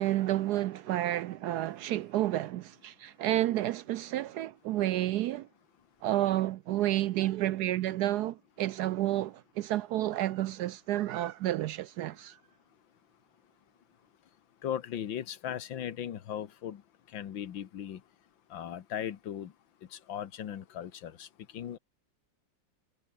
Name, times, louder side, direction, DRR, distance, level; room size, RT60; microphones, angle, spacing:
voice 1, 0.0-5.5 6.0-12.4, right 14 dB, 75° right, 1.0 m, -30 dB
voice 2, 14.6-18.1 18.5-19.6 19.8-21.8, left 10 dB, 85° left, 2.0 m, -38 dB
omnidirectional pair, 2.0 m